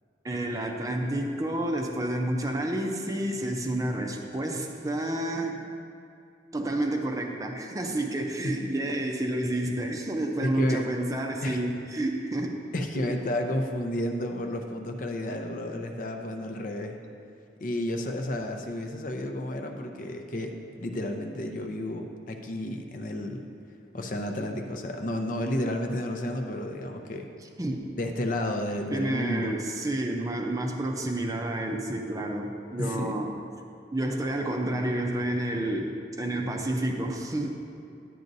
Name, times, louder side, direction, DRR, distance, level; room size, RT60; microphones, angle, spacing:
voice 1, 0.2-5.6 6.5-12.6 12.9-13.0 27.6-27.9 28.9-33.3 33.9-37.6, right 1 dB, 20° right, 2 dB, 0.5 m, -30 dB
voice 2, 10.4-10.9 11.4-11.6 12.7-17.0 17.6-23.5 23.9-27.3 28.0-29.6 32.8-33.2, left 1 dB, 50° left, 4 dB, 0.6 m, -31 dB
10.5 x 9.1 x 2.7 m, 2.5 s
head